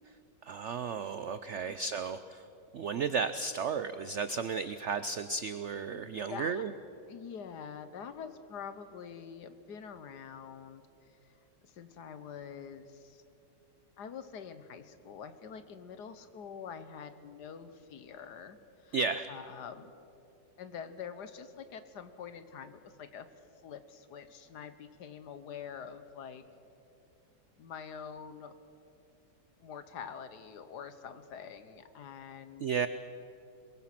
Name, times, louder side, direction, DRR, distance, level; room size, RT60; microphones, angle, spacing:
voice 1, 0.4-2.5 2.7-6.7 18.9-19.3 32.6-32.9, right 5 dB, 80° right, 12 dB, 0.6 m, -33 dB
voice 2, 5.9-6.6 7.1-10.8 11.2-11.3 11.6-13.2 14.0-18.6 18.8-19.0 19.3-19.9 20.6-23.3 23.6-26.4 27.6-28.5 29.6-32.7, left 7 dB, 65° left, 11 dB, 1.6 m, -45 dB
22.5 x 22.0 x 5.9 m, 2.7 s
omnidirectional pair, 1.9 m